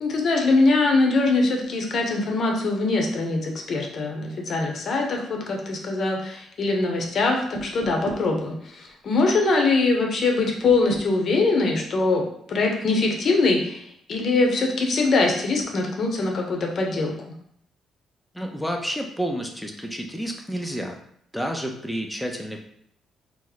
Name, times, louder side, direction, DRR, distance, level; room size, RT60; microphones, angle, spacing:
voice 1, 0.0-17.3, left 3 dB, 55° left, 1 dB, 0.8 m, -23 dB
sound 1, 7.5-8.3 10.6-11.1, right 6 dB, 85° right, 0.4 m, -36 dB
voice 2, 18.3-21.0 21.3-22.6, equal, 5° left, 2 dB, 0.5 m, -30 dB
3.0 x 2.0 x 3.9 m, 0.69 s
cardioid pair, 90°, 0 cm